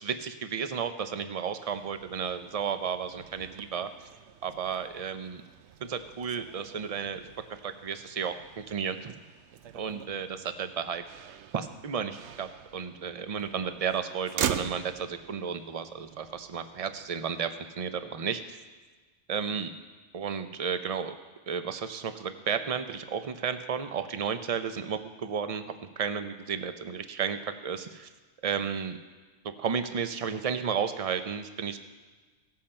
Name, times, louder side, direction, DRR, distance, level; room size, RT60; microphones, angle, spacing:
voice 1, 0.0-3.9 4.4-5.4 5.8-7.2 7.6-9.2 9.7-11.0 11.5-17.5 17.8-18.6 19.3-19.7 20.1-21.1 21.5-25.6 26.0-28.1 28.4-29.0 29.6-31.8, right 7 dB, 40° right, 9 dB, 0.6 m, -33 dB
Motor vehicle (road), 1.6-17.4, right 9 dB, 75° right, 0.9 m, -42 dB
17.5 x 7.5 x 4.3 m, 1.4 s
omnidirectional pair, 1.2 m